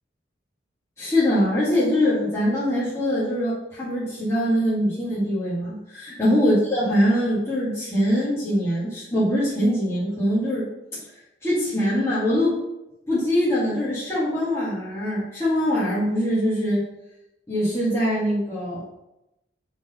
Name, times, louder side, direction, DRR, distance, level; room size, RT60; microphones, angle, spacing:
voice 1, 1.0-10.7 11.4-12.6 13.1-16.8 17.5-18.8, equal, 15° left, -11 dB, 1.8 m, -23 dB
5.0 x 4.0 x 5.6 m, 0.89 s
head